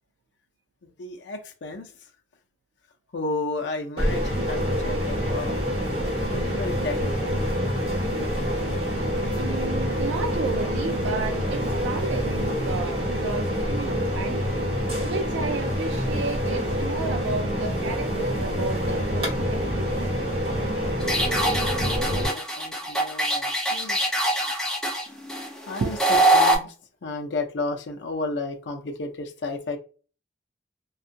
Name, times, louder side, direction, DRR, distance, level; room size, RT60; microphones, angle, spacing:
voice 1, 0.8-1.9 3.1-5.6 6.3-7.3 21.8-24.1 25.7-26.7 27.0-29.8, left 3 dB, 85° left, 0.5 m, -33 dB
sound 1, 4.0-22.3, equal, 30° right, 1.2 m, -26 dB
voice 2, 9.3-14.4 15.0-20.1 25.8-25.9, right 4 dB, 90° right, 0.3 m, -32 dB
sound 2, 21.0-26.6, right 1 dB, 5° left, 0.5 m, -23 dB
2.5 x 2.3 x 2.6 m
head